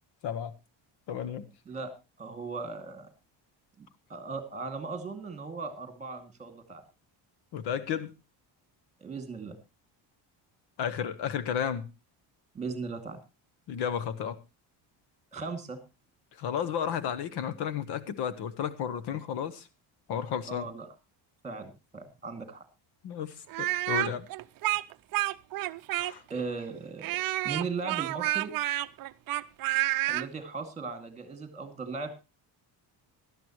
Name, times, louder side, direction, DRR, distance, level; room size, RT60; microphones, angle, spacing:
voice 1, 0.2-0.5 1.1-1.5 7.5-8.1 10.8-11.9 13.7-14.4 16.3-19.7 20.1-20.7 23.0-24.3 26.0-26.2, left 8 dB, 60° left, 1.1 m, -33 dB
voice 2, 2.2-3.1 3.8-6.8 9.0-9.6 12.5-13.2 15.3-15.8 20.5-20.9 21.4-22.6 26.3-28.5 30.1-32.1, right 4 dB, 15° right, 2.5 m, -38 dB
Speech, 23.5-26.4 27.0-30.3, right 17 dB, 50° right, 0.6 m, -29 dB
17.5 x 12.5 x 3.1 m
cardioid pair, 170°, 44 cm